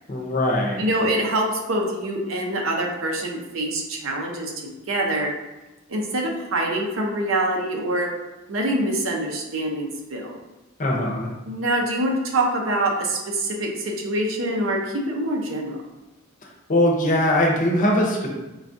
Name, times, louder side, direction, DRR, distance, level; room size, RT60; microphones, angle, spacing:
voice 1, 0.1-0.8 10.8-11.3 16.7-18.3, left 1 dB, 40° left, -1 dB, 0.6 m, -21 dB
voice 2, 0.8-5.3 5.9-8.1 8.5-10.4 11.4-15.8, right 1 dB, 75° right, 0 dB, 0.7 m, -25 dB
4.5 x 2.3 x 2.6 m, 1.0 s
head